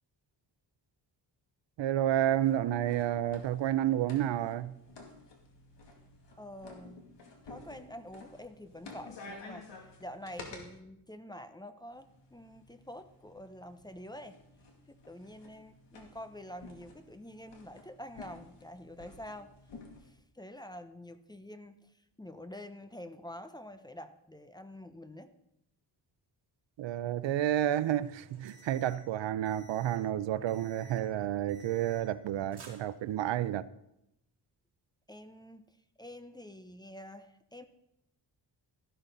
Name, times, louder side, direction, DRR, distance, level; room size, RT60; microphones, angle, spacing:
voice 1, 1.8-4.8 26.8-33.7, right 12 dB, 80° right, 0.6 m, -30 dB
sound 1, 2.0-10.6 11.9-20.1, left 3 dB, 75° left, 2.5 m, -52 dB
voice 2, 6.4-7.0 7.4-14.4 14.9-19.5 20.0-25.3 35.1-37.7, left 1 dB, 10° left, 0.6 m, -47 dB
sound 2, 28.0-29.1 29.4-30.1 30.5-31.1 31.5-32.3 32.5-33.4, right 2 dB, 60° right, 3.7 m, -55 dB
13.0 x 12.5 x 4.0 m
wide cardioid pair, 140°, 43 cm